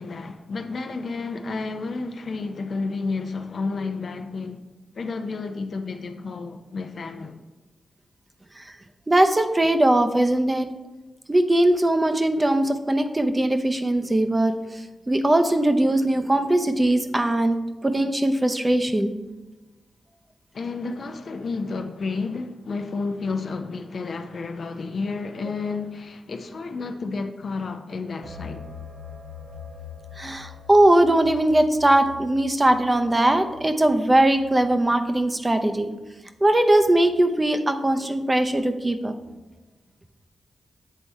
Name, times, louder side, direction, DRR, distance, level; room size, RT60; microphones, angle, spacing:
voice 1, 0.0-4.6 4.9-7.4 20.5-28.6, left 4 dB, 65° left, 0.6 m, -31 dB
voice 2, 9.1-10.7 11.3-17.6 17.8-19.1 30.2-35.9 36.4-39.1, right 1 dB, 25° right, 0.7 m, -20 dB
sound 1, 28.2-34.8, left 6 dB, 50° right, 1.4 m, -43 dB
8.3 x 3.4 x 4.2 m
cardioid pair, 50°, 0 cm